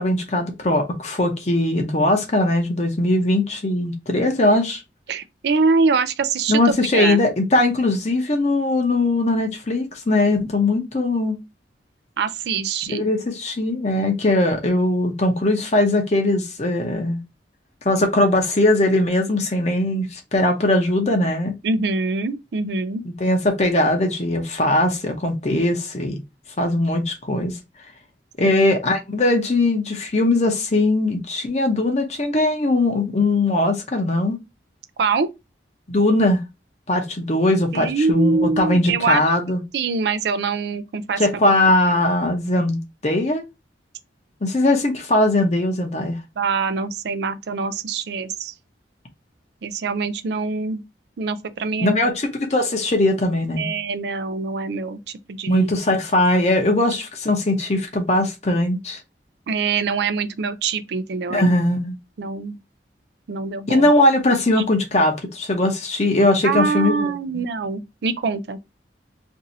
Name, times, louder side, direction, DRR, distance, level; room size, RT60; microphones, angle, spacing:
voice 1, 0.0-4.8 6.5-11.4 12.9-17.2 17.8-21.5 23.1-26.2 26.6-27.6 28.4-34.4 35.9-36.4 36.9-39.6 41.2-43.4 44.4-46.2 51.8-53.7 55.5-59.0 61.3-62.0 63.7-67.4, left 1 dB, 35° left, 0.7 m, -20 dB
voice 2, 5.1-7.2 12.2-13.1 21.6-23.0 28.5-28.6 35.0-35.3 37.7-39.2 39.7-41.5 46.4-48.5 49.6-50.8 51.2-52.0 53.6-55.7 59.5-61.6 62.2-62.6 63.3-63.9 66.4-68.6, right 4 dB, 65° right, 0.4 m, -24 dB
2.6 x 2.6 x 4.0 m
head